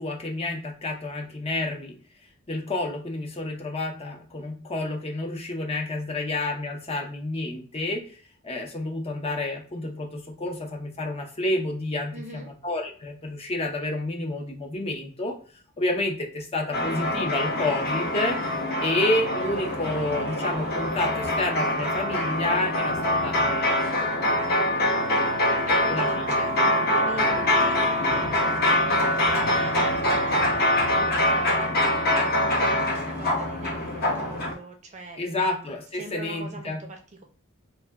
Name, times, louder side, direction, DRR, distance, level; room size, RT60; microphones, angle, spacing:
voice 1, 0.0-2.0 2.5-8.0 8.4-15.3 15.8-18.4 18.8-23.7 25.9-26.4 35.2-36.8, left 2 dB, 30° left, 2 dB, 0.6 m, -29 dB
voice 2, 12.1-12.5 24.3-30.5 30.8-37.2, right 2 dB, 35° right, 3 dB, 0.5 m, -42 dB
sound 1, 16.7-34.5, left 1 dB, 45° left, 1.0 m, -24 dB
3.1 x 2.2 x 3.4 m, 0.41 s
head